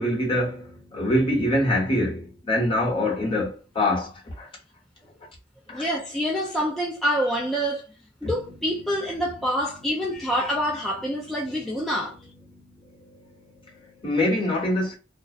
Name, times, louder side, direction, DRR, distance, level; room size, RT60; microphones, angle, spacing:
voice 1, 0.0-4.5 5.7-5.9 8.2-8.3 12.8-13.3 13.6-14.9, left 1 dB, 30° left, 1.0 m, -25 dB
voice 2, 5.7-7.9 8.2-12.3, equal, ahead, 0.4 m, -26 dB
2.6 x 2.0 x 2.3 m
head